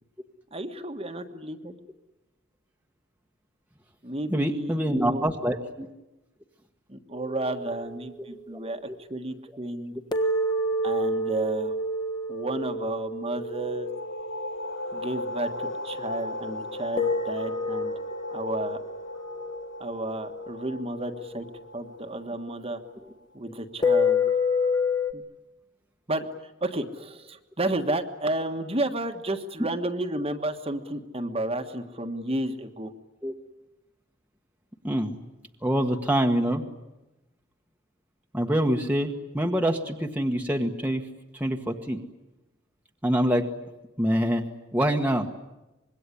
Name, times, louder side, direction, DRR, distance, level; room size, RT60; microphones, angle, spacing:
voice 1, 0.5-1.8 4.0-5.3 6.9-9.9 10.8-11.8 12.3-13.9 14.9-17.9 18.3-18.8 19.8-21.4 21.7-22.8 23.3-24.3 25.1-25.2 26.1-32.9, right 1 dB, 30° right, 6 dB, 1.5 m, -32 dB
voice 2, 4.3-5.9 33.2-33.3 34.8-35.2 35.6-36.6 38.3-41.0 41.3-42.0 43.0-43.5 44.0-45.3, equal, 10° right, 2 dB, 1.3 m, -25 dB
sound 1, 7.1-8.7 10.1-15.6 17.0-22.4 23.8-25.1, left 2 dB, 20° left, 1.5 m, -29 dB
sound 2, 13.6-23.0, left 2 dB, 65° left, 2.7 m, -38 dB
25.5 x 22.0 x 10.0 m, 1.0 s
head